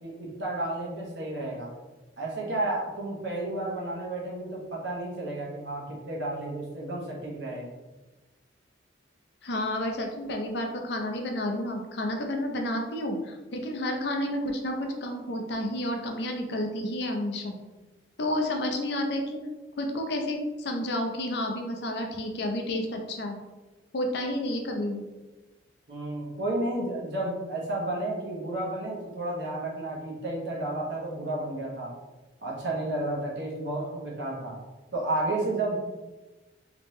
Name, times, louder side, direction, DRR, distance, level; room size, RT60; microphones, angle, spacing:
voice 1, 0.0-1.7 2.2-7.6 25.9-31.9 32.4-34.6 34.9-35.8, right 2 dB, 60° right, -4 dB, 1.1 m, -32 dB
voice 2, 9.4-17.6 18.2-19.4 19.8-23.4 23.9-25.1, left 1 dB, 60° left, 3 dB, 0.6 m, -30 dB
3.4 x 2.9 x 3.1 m, 1.2 s
head